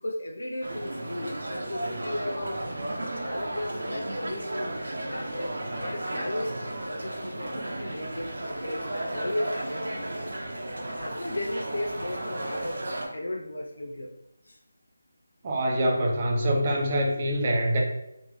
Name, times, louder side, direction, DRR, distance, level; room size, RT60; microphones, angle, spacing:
voice 1, 0.0-2.6 3.0-5.5 5.8-10.2 11.0-12.8 13.1-14.1 14.4-14.6, left 1 dB, 80° left, 1 dB, 0.5 m, -35 dB
sound 1, 0.6-13.1, right 1 dB, 70° right, 0.8 m, -34 dB
voice 2, 15.4-17.8, right 1 dB, 25° right, -1 dB, 0.6 m, -25 dB
3.1 x 2.5 x 3.4 m, 0.87 s
figure-of-eight pair, 170°, 0 cm